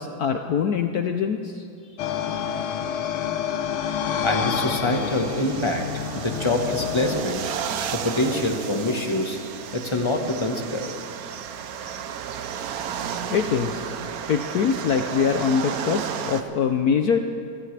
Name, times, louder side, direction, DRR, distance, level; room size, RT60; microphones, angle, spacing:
voice 1, 0.0-1.7 13.3-14.0 14.3-17.3, left 6 dB, 70° left, 6 dB, 0.9 m, -23 dB
sound 1, 2.0-7.2, left 8 dB, 85° left, 1.8 m, -28 dB
voice 2, 4.2-7.4 7.9-9.4 9.7-10.9, left 2 dB, 20° left, 3 dB, 0.9 m, -25 dB
sound 2, 4.9-16.4, right 8 dB, 65° right, 0.9 m, -33 dB
28.0 x 15.0 x 3.3 m, 2.4 s
omnidirectional pair, 2.3 m